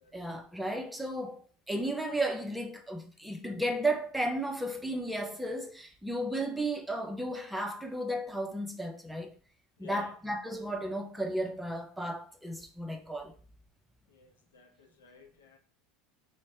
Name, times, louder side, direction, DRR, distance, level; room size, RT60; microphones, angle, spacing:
voice 1, 0.1-1.4 1.7-9.3 9.8-13.3, right 1 dB, 5° right, 0.6 m, -34 dB
voice 2, 14.5-15.6, left 7 dB, 85° left, 0.6 m, -52 dB
4.0 x 2.1 x 3.4 m
hypercardioid pair, 80°, 0 cm